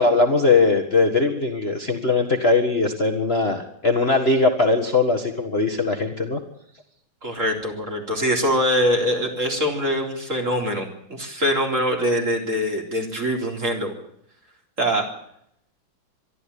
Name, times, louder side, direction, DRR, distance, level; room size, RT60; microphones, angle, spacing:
voice 1, 0.0-6.4, left 3 dB, 30° left, 4 dB, 1.9 m, -20 dB
voice 2, 7.2-13.9 14.8-15.1, equal, 35° right, 2 dB, 4.3 m, -23 dB
23.0 x 13.0 x 8.6 m, 0.74 s
omnidirectional pair, 2.2 m